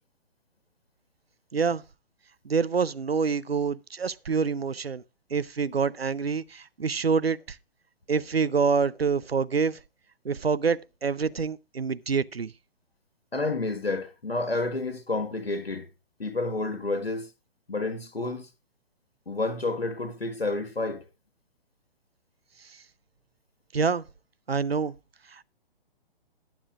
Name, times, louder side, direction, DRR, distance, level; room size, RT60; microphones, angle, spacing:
voice 1, 2.4-5.0 5.3-7.6 8.1-9.8 10.2-12.5 23.7-24.0 24.5-24.9 25.3-25.4, right 5 dB, 85° right, 0.7 m, -26 dB
voice 2, 13.3-15.8 16.2-17.3 17.7-18.5 19.3-21.0, left 2 dB, 85° left, 1.6 m, -30 dB
20.5 x 7.3 x 2.5 m
figure-of-eight pair, 125°, 30 cm